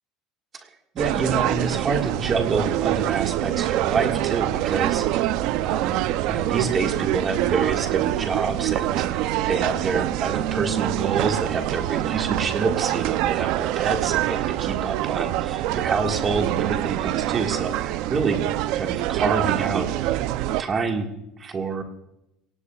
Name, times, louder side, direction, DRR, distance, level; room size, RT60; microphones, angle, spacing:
voice 1, 0.9-5.3 5.5-6.0 6.3-18.4 18.7-20.2 20.6-21.1 21.4-21.8, right 4 dB, 20° right, 3 dB, 1.7 m, -27 dB
sound 1, 1.0-20.6, right 14 dB, 55° right, 0.5 m, -25 dB
23.5 x 18.0 x 2.4 m, 0.86 s
cardioid pair, 180°, 0 cm